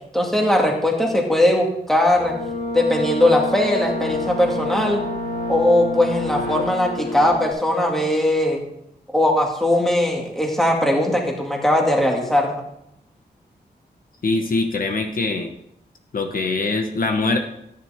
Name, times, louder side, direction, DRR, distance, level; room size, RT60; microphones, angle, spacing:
voice 1, 0.1-2.4 2.7-5.0 5.5-8.6 9.1-12.6, left 1 dB, ahead, -1 dB, 2.2 m, -19 dB
sound 1, 2.2-7.5, left 1 dB, 90° left, 5.6 m, -28 dB
voice 2, 14.2-15.5 16.1-17.4, left 3 dB, 55° left, 4 dB, 1.2 m, -22 dB
14.0 x 10.0 x 3.6 m, 0.77 s
wide cardioid pair, 175°, 17 cm